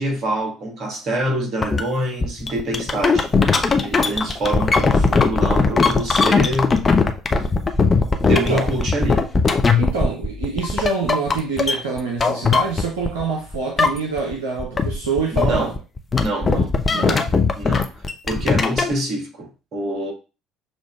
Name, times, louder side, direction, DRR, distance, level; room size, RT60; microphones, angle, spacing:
voice 1, 0.0-3.3 3.8-6.8 8.2-9.3 15.3-15.8 16.1-16.6 16.9-17.2 17.5-17.9 18.2-20.1, right 1 dB, 45° right, 1.2 m, -26 dB
sound 1, 1.6-1.8 2.2-13.2 13.5-14.3 14.6-18.9, left 4 dB, 30° left, 0.5 m, -19 dB
voice 2, 8.3-8.7 9.8-15.7 16.4-17.3, right 4 dB, 70° right, 0.6 m, -26 dB
6.2 x 2.5 x 2.3 m
figure-of-eight pair, 55°, 0 cm